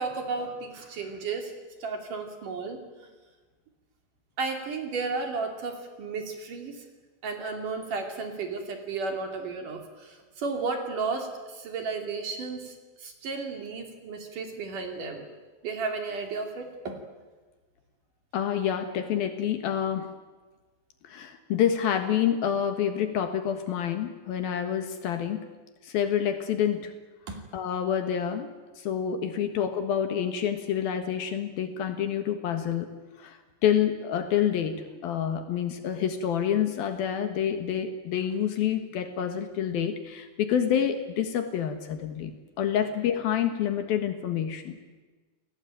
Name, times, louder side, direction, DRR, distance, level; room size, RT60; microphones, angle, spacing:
voice 1, 0.0-1.5 1.8-2.8 4.4-6.8 7.2-15.2 15.6-17.0 27.3-27.4 29.4-29.5 40.6-40.7, right 4 dB, 50° right, 4 dB, 4.0 m, -33 dB
voice 2, 18.3-20.1 21.0-25.4 25.8-26.9 27.5-28.5 28.8-32.9 33.2-44.8, left 9 dB, 65° left, 8 dB, 2.9 m, -28 dB
29.0 x 18.5 x 9.1 m, 1.3 s
omnidirectional pair, 5.0 m